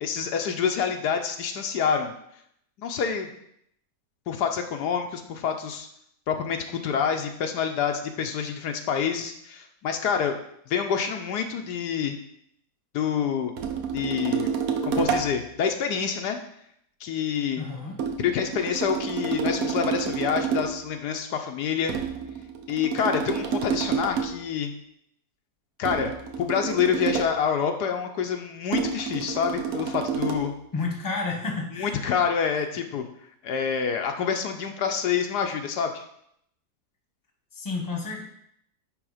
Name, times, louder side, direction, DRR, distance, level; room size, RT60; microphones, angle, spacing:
voice 1, 0.0-2.1 2.8-3.3 4.3-5.9 6.3-10.4 10.7-12.2 12.9-13.5 13.9-14.5 14.8-16.4 17.0-17.6 18.2-22.0 22.7-24.7 25.8-30.5 31.7-33.0 33.4-36.0, left 7 dB, 75° left, 5 dB, 1.3 m, -27 dB
sound 1, 13.6-15.4 18.0-20.8 21.9-24.4 25.9-27.4 28.7-30.5, right 6 dB, 65° right, 1.2 m, -29 dB
voice 2, 17.6-18.0 30.7-32.0 37.5-38.2, left 3 dB, 15° left, 1 dB, 1.1 m, -31 dB
9.9 x 3.4 x 4.9 m, 0.72 s
omnidirectional pair, 1.8 m